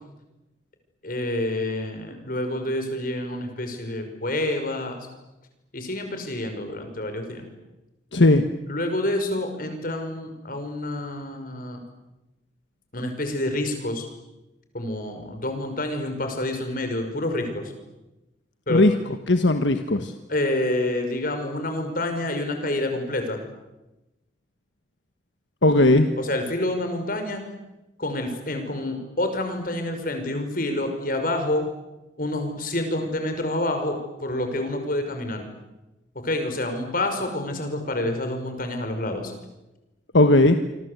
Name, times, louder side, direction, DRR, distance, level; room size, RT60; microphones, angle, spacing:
voice 1, 1.0-5.0 5.7-7.5 8.7-11.8 12.9-14.1 14.7-17.7 18.7-18.8 20.3-23.4 26.2-27.4 28.0-31.6 32.2-35.4 36.2-39.3, left 1 dB, 50° left, 6 dB, 5.7 m, -28 dB
voice 2, 8.1-8.4 18.7-18.9 19.3-20.1 25.6-26.1 40.1-40.5, left 2 dB, 80° left, 8 dB, 1.4 m, -17 dB
28.0 x 24.5 x 8.2 m, 1.0 s
head